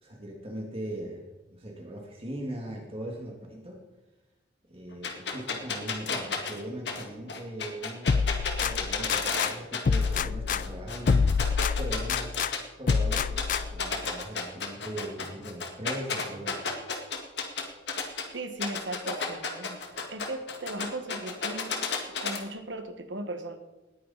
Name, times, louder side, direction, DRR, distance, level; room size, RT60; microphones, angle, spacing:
voice 1, 0.0-3.8 4.7-8.3 8.6-11.3 11.8-12.4 12.8-16.6, right 1 dB, 30° right, 0 dB, 2.0 m, -39 dB
sound 1, 5.0-10.2 10.5-12.6 12.9-18.2 18.6-22.4, left 5 dB, 60° left, 1.9 m, -32 dB
sound 2, 8.1-9.5 9.8-12.5 12.9-13.9, left 5 dB, 45° left, 0.3 m, -27 dB
voice 2, 18.3-19.8 20.1-21.8 22.2-23.6, right 2 dB, 70° right, 7 dB, 1.5 m, -37 dB
19.0 x 9.5 x 4.1 m, 1.1 s
head